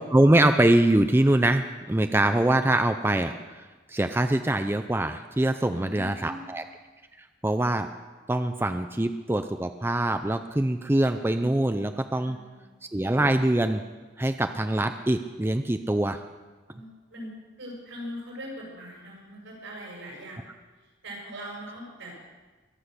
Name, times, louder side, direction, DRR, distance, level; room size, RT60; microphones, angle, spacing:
voice 1, 0.1-3.6 3.9-6.6 7.2-7.9 8.3-12.4 12.9-13.8 14.2-16.2, right 1 dB, 10° right, 8 dB, 0.4 m, -23 dB
voice 2, 5.6-6.5 12.2-12.7 16.7-17.3 17.6-20.4 21.0-22.3, equal, 90° right, -2 dB, 6.9 m, -41 dB
22.5 x 8.2 x 6.7 m, 1.3 s
head